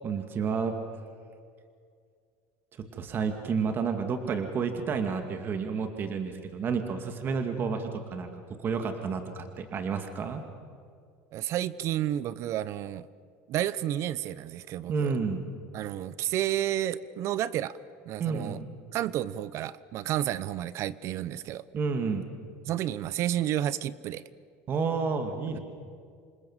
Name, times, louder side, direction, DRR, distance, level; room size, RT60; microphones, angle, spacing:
voice 1, 0.0-0.7 2.9-8.3 8.6-10.4 14.9-15.5 18.2-18.7 21.7-22.3 24.7-25.6, right 5 dB, 35° right, 6 dB, 2.3 m, -30 dB
voice 2, 11.3-13.1 13.5-15.1 15.7-17.8 18.0-18.6 18.9-21.6 22.7-24.2 25.5-25.6, right 12 dB, 50° right, 18 dB, 0.8 m, -31 dB
28.0 x 25.5 x 7.5 m, 2.2 s
supercardioid pair, 125°, 6 cm